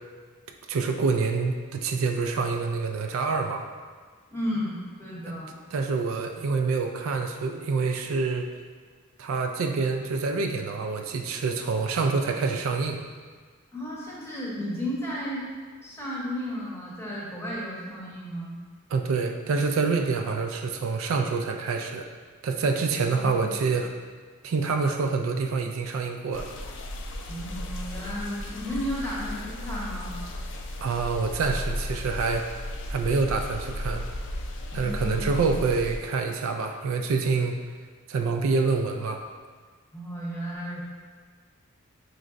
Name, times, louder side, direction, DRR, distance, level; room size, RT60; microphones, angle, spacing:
voice 1, 0.7-3.7 5.7-8.5 9.2-13.0 18.9-22.1 22.4-23.9 24.4-26.5 30.8-32.4 32.9-34.0 34.7-37.6 38.1-39.2, right 4 dB, 70° right, 4 dB, 0.3 m, -26 dB
voice 2, 4.3-5.5 13.7-15.5 15.8-18.6 22.8-23.6 27.3-30.2 34.7-35.4 39.9-40.8, equal, 10° left, -6 dB, 0.8 m, -34 dB
sound 1, 26.3-36.0, left 1 dB, 60° left, 0.4 m, -35 dB
5.0 x 3.2 x 2.5 m, 1.5 s
head